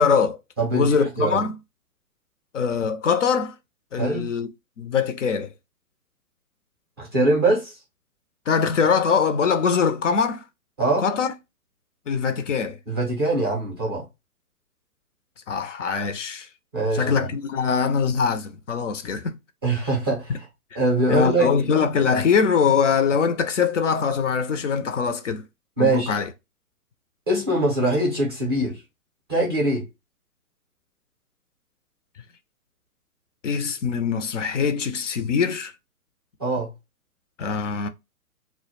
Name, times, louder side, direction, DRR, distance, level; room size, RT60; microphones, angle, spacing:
voice 1, 0.0-0.4 0.7-1.5 2.5-3.5 3.9-4.5 4.8-5.5 8.5-10.4 11.0-11.3 12.1-12.8 15.5-16.5 16.9-19.3 20.3-20.4 21.1-25.4 25.8-26.3 33.4-35.7 37.4-37.9, left 6 dB, 55° left, 0.5 m, -22 dB
voice 2, 0.6-1.4 3.9-4.3 7.0-7.7 10.8-11.0 12.9-14.0 16.7-17.3 19.6-20.4 20.7-21.5 25.8-26.1 27.3-28.8 29.3-29.8 36.4-36.7, right 2 dB, 15° right, 0.5 m, -23 dB
2.1 x 2.0 x 3.1 m
hypercardioid pair, 140°, 46 cm